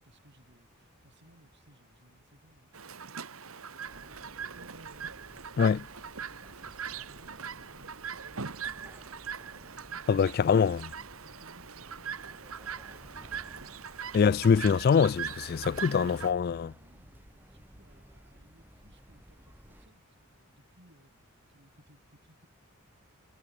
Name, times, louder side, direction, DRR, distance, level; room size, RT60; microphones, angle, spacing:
voice 1, 0.0-4.7 5.3-10.7 11.2-14.1 15.8-22.5, right 1 dB, 55° right, 6.3 m, -63 dB
Chirp tweet, 2.7-16.3, right 7 dB, 80° right, 1.7 m, -41 dB
sound 1, 3.8-19.9, equal, 10° right, 3.2 m, -55 dB
voice 2, 10.1-10.9 14.1-16.7, left 6 dB, 45° left, 0.3 m, -24 dB
head